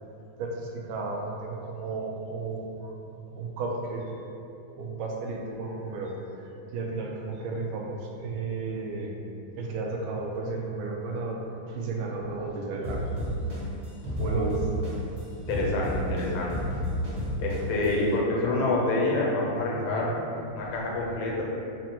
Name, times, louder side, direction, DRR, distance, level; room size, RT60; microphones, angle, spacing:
voice 1, 0.4-4.1 4.8-9.1 9.6-13.1 14.2-14.6 19.6-20.7, right 3 dB, 80° right, -1 dB, 1.4 m, -34 dB
sound 1, 12.8-15.2 15.5-17.9, left 1 dB, 35° right, 0.6 m, -32 dB
voice 2, 15.3-16.5 17.4-20.1 20.6-21.4, left 2 dB, 85° left, -3 dB, 1.6 m, -27 dB
3.9 x 2.1 x 4.2 m, 2.7 s
omnidirectional pair, 2.4 m